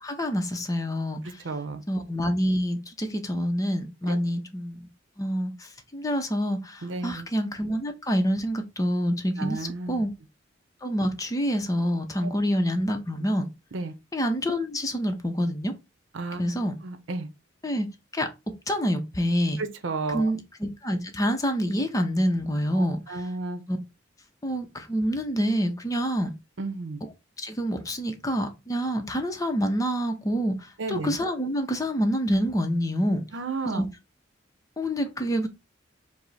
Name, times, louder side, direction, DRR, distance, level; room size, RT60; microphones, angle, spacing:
voice 1, 0.0-1.4 1.9-4.9 5.2-10.1 10.8-13.4 14.1-15.7 16.4-16.7 17.6-18.3 18.7-19.6 20.1-23.3 23.7-23.8 24.4-26.3 27.4-33.2 33.6-33.9 34.8-35.5, equal, 20° left, 0.6 m, -27 dB
voice 2, 1.4-1.8 4.1-4.2 6.8-7.3 9.4-10.0 12.2-12.3 13.7-13.9 16.1-16.4 16.8-17.3 19.6-20.3 22.7-23.6 26.6-27.0 30.8-31.2 33.3-33.8, right 3 dB, 80° right, 0.7 m, -32 dB
4.8 x 2.0 x 4.0 m
head